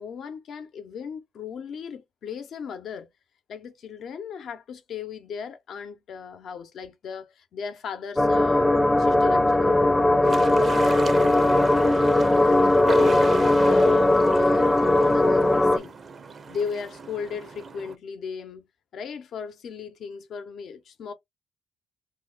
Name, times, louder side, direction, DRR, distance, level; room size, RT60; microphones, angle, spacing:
voice 1, 0.0-3.1 3.5-9.8 10.1-10.4 10.8-11.8 12.2-16.0 16.5-18.7 18.9-21.1, left 6 dB, 65° left, 0.8 m, -37 dB
sound 1, 8.2-15.8, left 1 dB, 10° left, 0.4 m, -19 dB
sound 2, 10.2-18.0, right 5 dB, 45° right, 0.6 m, -37 dB
2.9 x 2.2 x 3.8 m
cardioid pair, 90°, 0 cm